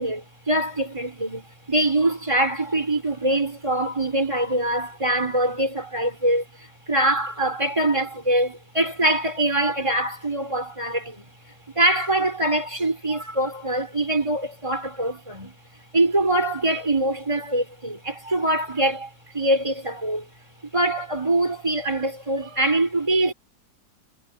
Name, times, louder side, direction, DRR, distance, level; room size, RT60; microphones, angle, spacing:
voice 1, 0.0-11.3 11.7-15.6 15.9-20.3 20.7-23.3, right 1 dB, 15° right, 4.6 m, -24 dB
omnidirectional pair, 1.9 m